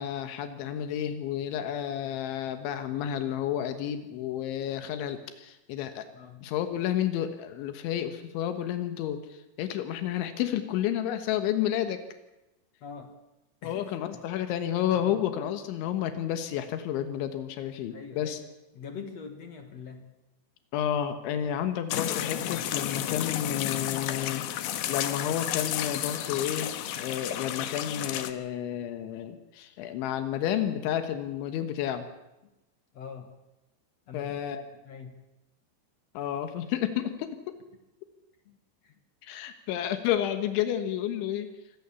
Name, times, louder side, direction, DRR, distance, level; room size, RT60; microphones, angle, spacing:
voice 1, 0.0-6.1 6.4-12.0 13.6-18.4 20.7-24.4 24.9-32.0 34.1-34.6 36.2-37.6 39.2-41.5, left 10 dB, 90° left, 8 dB, 3.8 m, -31 dB
voice 2, 6.1-6.5 12.8-13.2 13.6-14.2 14.9-15.1 17.9-18.4 18.7-20.1 32.9-33.3 34.1-34.4 34.8-35.2 38.5-38.6 38.8-39.0, left 6 dB, 55° left, 6 dB, 1.9 m, -43 dB
sound 1, 21.9-28.3, left 11 dB, 75° left, 3.1 m, -32 dB
25.0 x 20.0 x 7.1 m, 0.95 s
omnidirectional pair, 5.2 m